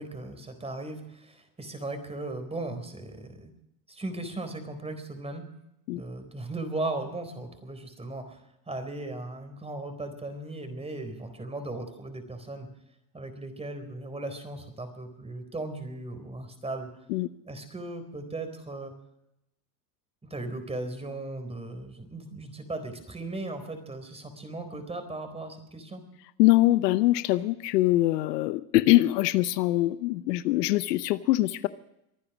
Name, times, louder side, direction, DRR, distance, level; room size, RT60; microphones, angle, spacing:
voice 1, 0.0-3.5 3.9-5.5 5.9-8.4 8.7-12.7 13.1-16.9 17.4-18.9 20.2-26.0, right 2 dB, 10° right, 8 dB, 4.0 m, -37 dB
voice 2, 26.4-31.7, left 17 dB, 70° left, 15 dB, 0.9 m, -23 dB
23.5 x 9.7 x 6.1 m, 0.83 s
hypercardioid pair, 100°, 49 cm